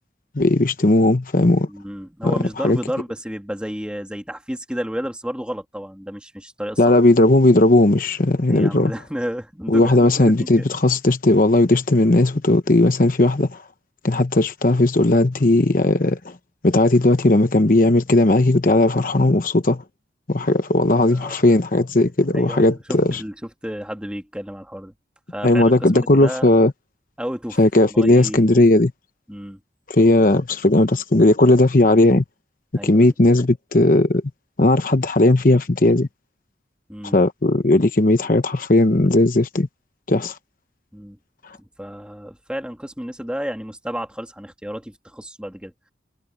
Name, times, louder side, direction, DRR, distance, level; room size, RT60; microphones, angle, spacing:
voice 1, 0.3-1.7 2.2-2.3 2.6-2.8 6.8-8.9 9.7-13.6 14.0-16.3 16.6-19.8 20.3-23.2 25.4-26.7 27.6-28.9 29.9-32.2 32.8-34.2 34.6-36.1 37.0-39.7 40.1-40.3, left 2 dB, 45° left, 1.0 m, -16 dB
voice 2, 1.7-6.9 8.5-10.7 12.0-12.1 20.9-21.4 22.3-24.9 25.3-26.5 27.2-27.6 27.9-28.5 29.3-29.6 32.7-33.1 36.9-37.2 40.9-41.2 41.6-45.7, equal, 5° right, 2.6 m, -32 dB
head